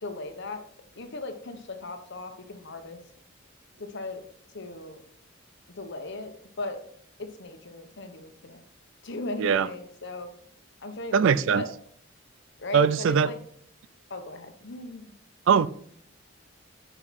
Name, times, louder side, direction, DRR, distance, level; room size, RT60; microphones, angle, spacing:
voice 1, 0.0-0.6 1.0-3.0 3.8-4.2 4.5-5.0 5.7-6.8 7.2-8.6 9.0-10.3 10.8-11.2 11.5-11.7 12.6-13.4 14.1-15.1, left 2 dB, 60° left, 1.1 m, -37 dB
voice 2, 11.1-11.6 12.7-13.3 15.5-15.7, right 6 dB, 70° right, 0.4 m, -21 dB
9.1 x 5.7 x 4.1 m
head